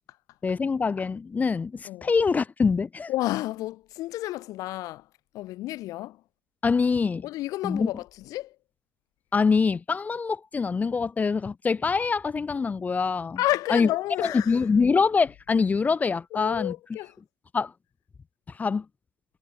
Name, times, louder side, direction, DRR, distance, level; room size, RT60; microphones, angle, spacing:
voice 1, 0.4-3.1 6.6-7.3 7.6-7.9 9.3-13.4 13.7-13.9 14.2-16.7 17.5-17.7 18.5-18.9, left 5 dB, 20° left, 0.5 m, -24 dB
voice 2, 3.1-5.0 5.3-6.2 7.2-8.0 8.3-8.5 13.4-14.6 16.3-17.1, left 16 dB, 50° left, 1.2 m, -30 dB
figure-of-eight pair, 55°, 7 cm